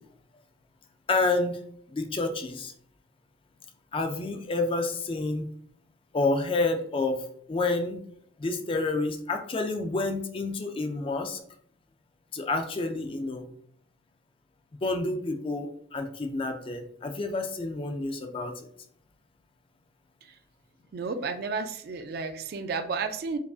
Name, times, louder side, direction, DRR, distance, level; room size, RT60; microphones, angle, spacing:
voice 1, 1.1-1.6 1.9-2.7 3.9-5.4 6.1-7.2 7.5-8.0 8.4-11.4 12.3-13.5 14.8-18.5, left 3 dB, 30° left, 6 dB, 0.4 m, -29 dB
voice 2, 20.9-23.4, right 4 dB, 55° right, 9 dB, 0.3 m, -32 dB
4.6 x 2.5 x 2.4 m, 0.63 s
head